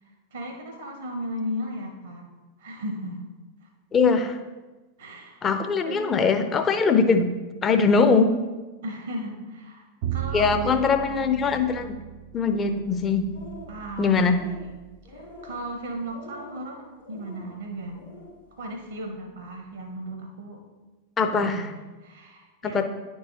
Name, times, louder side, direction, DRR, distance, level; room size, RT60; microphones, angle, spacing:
voice 1, 0.3-2.3 2.6-3.2 3.6-3.7 5.0-5.6 5.9-6.1 8.8-11.5 13.7-14.8 15.1-18.0 18.6-20.6 21.4-22.8, equal, 70° right, 4 dB, 0.7 m, -36 dB
voice 2, 3.9-4.4 5.4-7.3 7.6-8.3 10.3-12.0 12.3-13.3 14.0-14.4 21.2-21.7 22.6-22.8, left 4 dB, 25° left, 7 dB, 0.6 m, -21 dB
Bowed string instrument, 10.0-16.2, right 10 dB, 50° right, 0.3 m, -37 dB
sound 1, 13.1-13.8 14.1-14.6 15.0-15.6 16.1-16.6 17.0-17.4 17.9-18.3, left 1 dB, 75° left, 1.7 m, -45 dB
9.6 x 4.6 x 2.8 m, 1.2 s
figure-of-eight pair, 90°, 0 cm